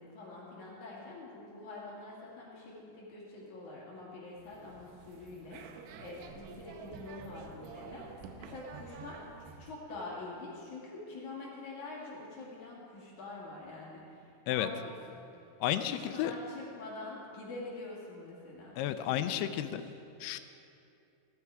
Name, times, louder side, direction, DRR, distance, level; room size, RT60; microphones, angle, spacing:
voice 1, 0.0-9.2 9.6-20.1, left 2 dB, 50° left, -5 dB, 3.5 m, -46 dB
sound 1, 4.3-9.8, right 5 dB, 90° right, 3.0 m, -49 dB
voice 2, 15.6-16.3 18.8-19.8 20.2-20.4, left 12 dB, 90° left, 10 dB, 2.6 m, -32 dB
17.0 x 13.0 x 4.8 m, 2.6 s
omnidirectional pair, 4.6 m